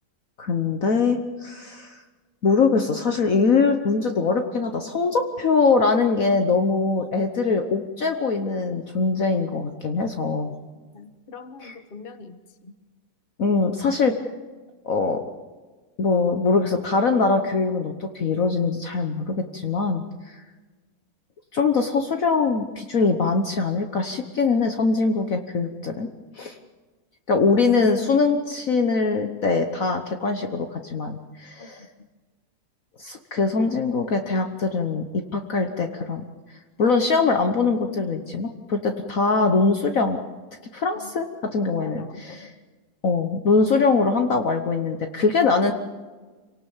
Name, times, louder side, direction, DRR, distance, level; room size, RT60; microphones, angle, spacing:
voice 1, 0.4-2.0 2.4-10.5 11.6-11.7 13.4-14.1 14.8-15.2 16.0-20.4 21.5-26.1 26.3-26.6 27.3-31.8 33.0-36.2 36.8-40.2 40.7-42.5 43.0-45.7, left 4 dB, 50° left, 5 dB, 1.5 m, -22 dB
voice 2, 10.9-12.7 31.6-32.1 40.9-41.1 41.8-42.5, left 4 dB, 30° left, 9 dB, 1.5 m, -43 dB
27.0 x 18.0 x 7.2 m, 1.4 s
omnidirectional pair, 2.0 m